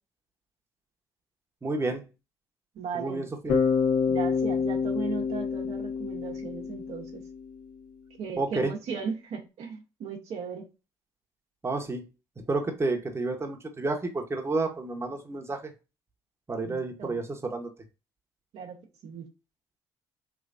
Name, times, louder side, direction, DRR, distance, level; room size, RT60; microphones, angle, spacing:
voice 1, 1.6-2.0 2.9-3.6 8.4-8.7 11.6-12.1 12.5-15.7 16.5-17.7, right 3 dB, 25° right, 1.0 m, -30 dB
voice 2, 2.7-3.2 4.1-7.2 8.2-10.7 16.6-17.2 18.5-19.3, right 6 dB, 70° right, 0.9 m, -37 dB
Bass guitar, 3.5-7.5, left 5 dB, 85° left, 1.4 m, -27 dB
3.3 x 3.1 x 2.5 m
hypercardioid pair, 55°, 11 cm